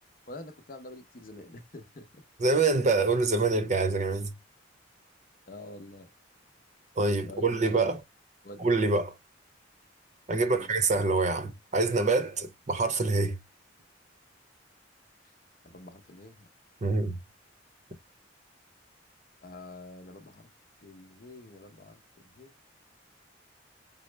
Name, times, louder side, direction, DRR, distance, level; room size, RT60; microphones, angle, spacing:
voice 1, 0.3-2.2 5.5-6.1 7.3-8.0 8.4-8.7 10.5-10.7 15.6-16.5 19.4-20.5 20.8-22.5, left 1 dB, 50° left, 0.7 m, -46 dB
voice 2, 2.4-4.3 7.0-8.0 8.6-9.1 10.3-13.4 16.8-17.2, right 3 dB, 40° right, 0.7 m, -26 dB
5.4 x 2.0 x 3.2 m
head